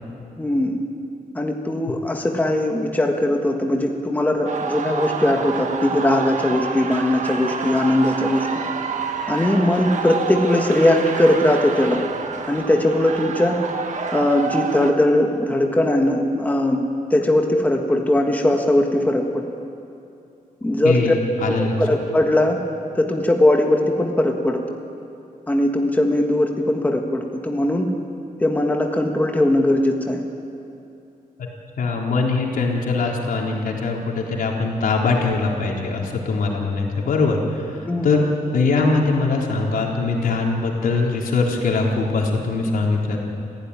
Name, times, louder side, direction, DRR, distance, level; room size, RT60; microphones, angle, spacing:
voice 1, 0.4-0.8 1.3-8.5 9.3-12.0 12.5-13.6 14.1-16.8 17.1-19.4 20.6-21.0 21.5-22.6 22.9-24.6 25.5-27.9 28.4-30.2 37.8-38.2, left 1 dB, 10° left, 2 dB, 1.6 m, -20 dB
sound 1, 4.5-14.9, right 5 dB, 55° right, 1.6 m, -28 dB
voice 2, 20.8-21.7 31.8-38.2 38.5-43.2, left 3 dB, 75° left, -1 dB, 3.9 m, -22 dB
27.0 x 16.0 x 9.9 m, 2.7 s
wide cardioid pair, 170°, 15 cm